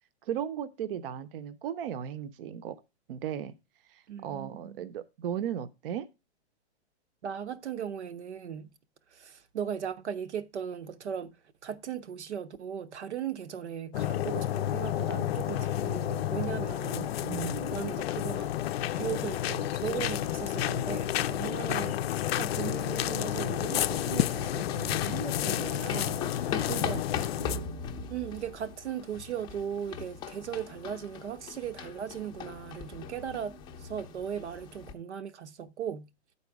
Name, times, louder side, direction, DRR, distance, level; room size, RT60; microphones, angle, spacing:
voice 1, 0.2-2.8 3.1-3.6 3.9-6.1 17.2-17.8 26.6-26.8 27.3-27.8, right 9 dB, 55° right, 0.7 m, -36 dB
voice 2, 4.1-4.9 7.2-8.7 9.1-11.3 11.6-17.1 17.7-18.5 18.9-22.0 22.4-27.1 28.1-33.5 33.8-36.1, right 8 dB, 85° right, 0.9 m, -37 dB
sound 1, 13.9-27.6, left 12 dB, 65° left, 0.5 m, -31 dB
sound 2, 23.2-34.9, left 7 dB, 15° left, 0.5 m, -40 dB
10.0 x 4.2 x 4.6 m
hypercardioid pair, 145°, 33 cm